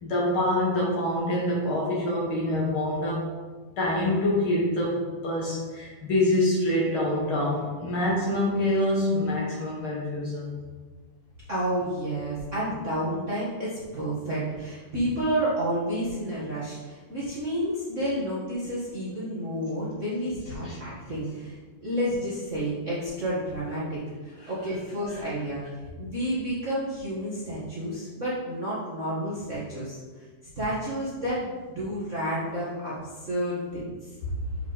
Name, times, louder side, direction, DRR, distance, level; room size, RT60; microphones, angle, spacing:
voice 1, 0.0-3.3 3.8-10.5 20.6-20.8, left 1 dB, 50° left, -4 dB, 1.7 m, -26 dB
voice 2, 11.5-30.2 30.5-34.2, equal, 45° right, -8 dB, 1.0 m, -30 dB
7.4 x 5.7 x 4.0 m, 1.4 s
omnidirectional pair, 3.9 m